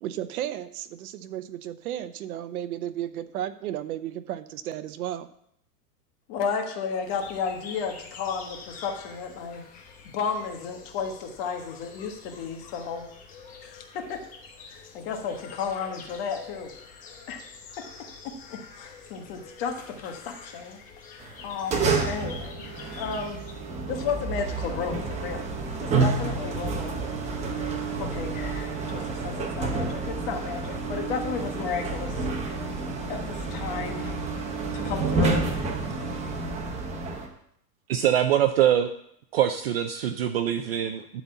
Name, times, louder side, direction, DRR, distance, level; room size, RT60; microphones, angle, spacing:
voice 1, 0.0-5.3, right 12 dB, 65° right, 12 dB, 0.8 m, -34 dB
voice 2, 6.3-9.6 10.1-13.1 13.6-14.2 14.7-16.7 17.3-17.4 17.8-17.9 18.2-20.8 21.1-23.4 23.9-25.4 25.8-27.0 28.0-32.3 33.1-34.1 34.7-35.5, left 6 dB, 40° left, 4 dB, 1.5 m, -33 dB
sound 1, 7.0-23.5, left 5 dB, 15° left, 1.0 m, -47 dB
sound 2, 21.2-37.3, right 4 dB, 15° right, 0.9 m, -29 dB
voice 3, 37.9-38.9 39.3-41.2, right 10 dB, 40° right, 8 dB, 0.4 m, -23 dB
12.0 x 4.1 x 7.2 m, 0.72 s
supercardioid pair, 160°, 47 cm